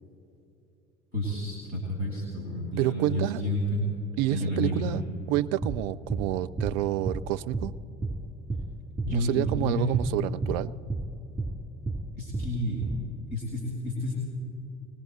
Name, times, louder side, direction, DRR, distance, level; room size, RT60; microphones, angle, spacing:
voice 1, 1.1-3.8 4.3-4.9 9.0-9.9 12.2-12.8 13.3-14.1, left 1 dB, 90° left, -3 dB, 2.3 m, -30 dB
voice 2, 2.8-3.4 4.2-5.0 5.3-7.7 9.1-10.7, right 15 dB, 55° right, 15 dB, 0.5 m, -28 dB
sound 1, 5.6-5.8 6.1-6.3 6.6-6.7 7.1-7.2 7.5-7.7 8.0-8.2 8.5-8.7 9.0-9.1 9.4-9.6 9.9-10.1 10.4-10.6 10.9-11.1 11.4-11.5 11.9-12.0 12.3-12.5 12.8-13.0, right 3 dB, 15° right, 2.9 m, -30 dB
21.0 x 18.5 x 3.1 m, 2.8 s
figure-of-eight pair, 60°, 35 cm